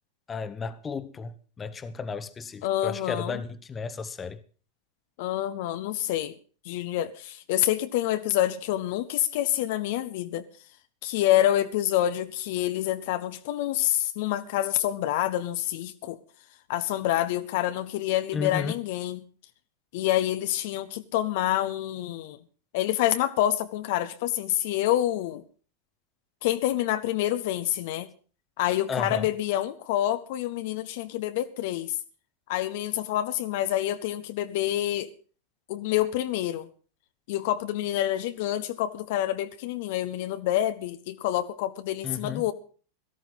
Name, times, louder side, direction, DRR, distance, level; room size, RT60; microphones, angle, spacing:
voice 1, 0.3-4.4 18.3-18.8 28.9-29.3 42.0-42.4, left 5 dB, 20° left, 1.1 m, -33 dB
voice 2, 2.6-3.4 5.2-6.3 6.6-10.4 11.0-16.2 16.7-19.2 19.9-22.4 22.7-25.4 26.4-28.1 28.6-32.0 32.5-35.1 35.7-36.7 37.3-42.5, left 13 dB, 50° left, 0.9 m, -27 dB
18.0 x 14.0 x 3.9 m
figure-of-eight pair, 90°, 0 cm